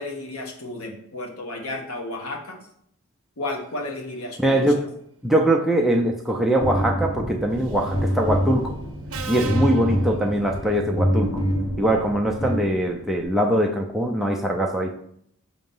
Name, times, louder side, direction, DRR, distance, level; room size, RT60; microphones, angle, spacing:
voice 1, 0.0-2.6 3.4-4.6, left 2 dB, 70° left, 2 dB, 1.1 m, -33 dB
voice 2, 4.4-4.8 5.2-8.8 9.3-11.4 11.8-14.9, right 1 dB, ahead, 0 dB, 0.4 m, -22 dB
sound 1, 6.6-13.2, equal, 55° left, 1.5 m, -26 dB
Subway metro underground, 7.6-8.0 9.1-10.8, right 5 dB, 65° right, 0.7 m, -37 dB
6.3 x 2.9 x 5.3 m, 0.69 s
head